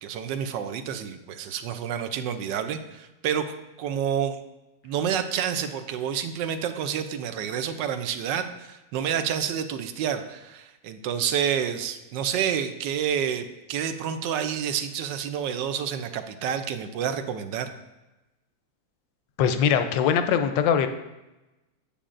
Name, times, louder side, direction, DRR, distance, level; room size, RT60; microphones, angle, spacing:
voice 1, 0.0-4.4 4.8-17.7, right 8 dB, 80° right, 9 dB, 1.3 m, -29 dB
voice 2, 19.4-20.9, left 8 dB, 90° left, 9 dB, 1.3 m, -22 dB
8.6 x 6.9 x 2.5 m, 1.0 s
omnidirectional pair, 1.9 m